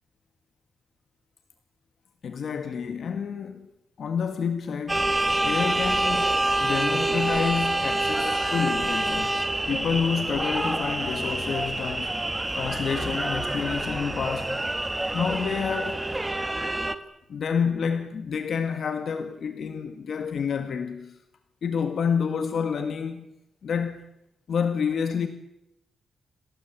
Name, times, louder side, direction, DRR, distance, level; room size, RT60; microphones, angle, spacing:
voice 1, 2.2-3.7 4.0-9.4 9.7-12.2 12.5-14.6 15.1-16.0 17.3-21.2 21.6-23.3 23.6-24.1 24.5-25.3, left 6 dB, 60° left, 1.9 m, -29 dB
sound 1, 4.9-17.0, right 1 dB, 10° right, 1.5 m, -27 dB
28.0 x 19.0 x 8.6 m
wide cardioid pair, 120°, 0 cm